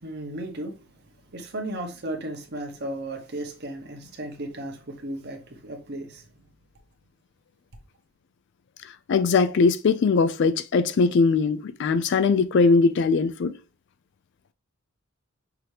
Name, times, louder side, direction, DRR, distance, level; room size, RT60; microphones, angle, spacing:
voice 1, 0.0-0.8 1.3-6.2, right 1 dB, 50° right, 1.0 m, -35 dB
voice 2, 8.8-13.5, left 4 dB, 55° left, 0.3 m, -21 dB
5.9 x 2.8 x 3.1 m
head